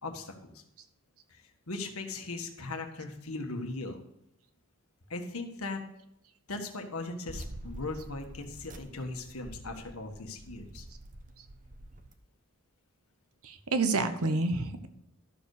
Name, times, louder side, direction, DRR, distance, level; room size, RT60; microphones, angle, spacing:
voice 1, 0.0-0.6 1.3-4.0 5.1-5.8 6.5-10.9, left 3 dB, 80° left, 4 dB, 1.6 m, -39 dB
sound 1, 7.3-12.1, right 1 dB, 40° right, 1.0 m, -46 dB
voice 2, 13.4-14.9, right 3 dB, 85° right, 9 dB, 1.1 m, -28 dB
12.5 x 6.9 x 4.9 m, 0.79 s
head